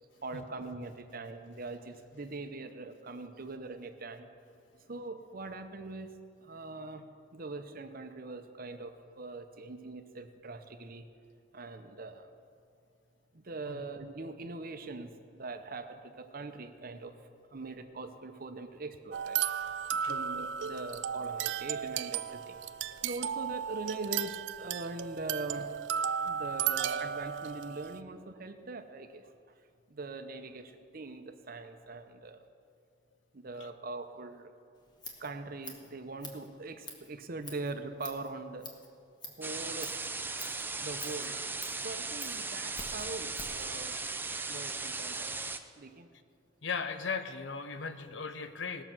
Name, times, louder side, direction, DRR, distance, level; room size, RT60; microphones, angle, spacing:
voice 1, 0.2-4.3 4.9-6.2 6.4-7.1 7.3-11.0 11.5-12.3 13.3-17.1 17.5-19.4 19.9-22.6 23.0-25.7 26.2-29.3 29.9-32.4 33.3-34.5 35.2-38.7 39.2-39.9 40.8-41.4 41.8-43.9 44.5-45.4 45.8-46.1, right 3 dB, 50° right, 8 dB, 0.8 m, -42 dB
sound 1, 19.1-28.0, right 8 dB, 65° right, 0.4 m, -34 dB
Scissors, 34.7-43.7, left 2 dB, 25° left, 1.5 m, -48 dB
sound 2, 39.4-45.6, right 3 dB, 10° right, 0.5 m, -37 dB
voice 2, 46.6-48.8, left 5 dB, 70° left, 9 dB, 0.8 m, -37 dB
18.5 x 6.8 x 6.1 m, 2.3 s
head